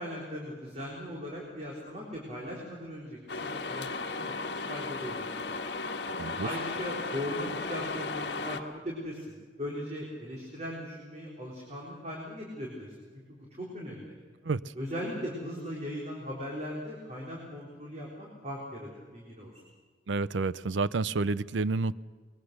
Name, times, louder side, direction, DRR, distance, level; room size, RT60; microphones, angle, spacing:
voice 1, 0.0-5.7 6.4-12.9 13.3-14.1 14.8-19.5, equal, 35° right, 3.9 m, -39 dB
sound 1, 3.3-8.6, left 3 dB, 65° left, 1.5 m, -35 dB
voice 2, 6.2-6.5 14.4-14.7 20.1-21.9, right 3 dB, 80° right, 0.6 m, -29 dB
23.5 x 21.5 x 6.7 m
head